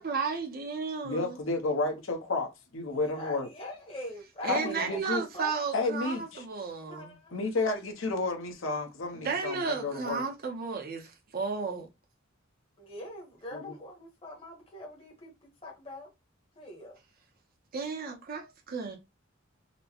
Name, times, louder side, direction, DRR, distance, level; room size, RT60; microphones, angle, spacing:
voice 1, 0.0-1.4 4.4-7.2 9.1-11.9 17.7-19.0, right 5 dB, 45° right, 0.6 m, -34 dB
voice 2, 1.0-3.5 4.5-5.2 5.7-6.4 7.3-10.2 13.5-13.7, left 3 dB, 70° left, 1.0 m, -31 dB
voice 3, 2.9-5.6 5.8-6.0 6.9-7.3 12.8-15.3 15.6-16.1 16.6-17.0, left 1 dB, 30° left, 1.0 m, -43 dB
4.2 x 2.1 x 2.8 m
head